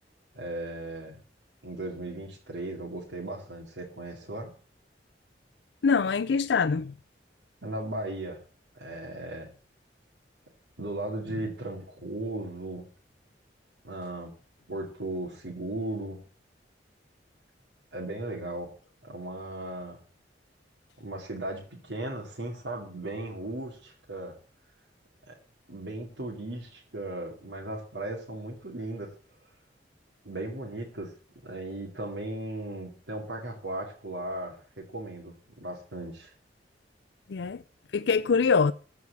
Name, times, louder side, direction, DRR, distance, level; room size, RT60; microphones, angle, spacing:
voice 1, 0.3-1.2 1.6-4.5 7.6-8.4 8.7-9.5 10.8-12.8 13.8-14.3 14.7-16.2 17.9-18.7 19.0-20.0 21.0-24.4 25.3-25.4 25.7-29.1 30.2-31.1 31.4-36.3, right 1 dB, 85° right, 2.5 m, -36 dB
voice 2, 5.8-6.9 37.3-37.6 37.9-38.7, left 5 dB, 70° left, 0.4 m, -24 dB
14.5 x 4.8 x 8.4 m
head